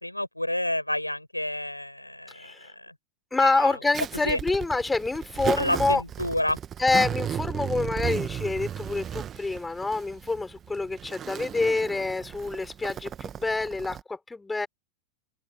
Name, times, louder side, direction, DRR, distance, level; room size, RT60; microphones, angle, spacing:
voice 1, 0.0-2.9 3.4-3.8 4.2-4.4 5.6-6.6, left 1 dB, 85° left, 7.8 m, -29 dB
voice 2, 2.3-2.7 3.3-6.0 6.8-14.7, left 3 dB, 10° left, 5.7 m, -27 dB
Zipper (clothing), 3.9-14.0, right 9 dB, 25° right, 1.7 m, -35 dB
open air
figure-of-eight pair, 90°, 0 cm